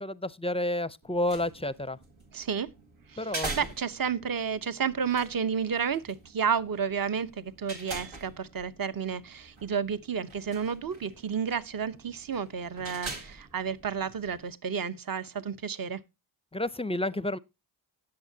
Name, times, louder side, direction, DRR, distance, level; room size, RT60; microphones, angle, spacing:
voice 1, 0.0-2.0 3.2-3.6 16.5-17.4, left 1 dB, 15° left, 0.5 m, -30 dB
sound 1, 1.0-14.5, right 3 dB, 85° right, 2.1 m, -44 dB
voice 2, 2.3-2.7 3.1-16.0, right 6 dB, 45° right, 0.9 m, -31 dB
17.5 x 6.6 x 2.7 m
cardioid pair, 60°, 46 cm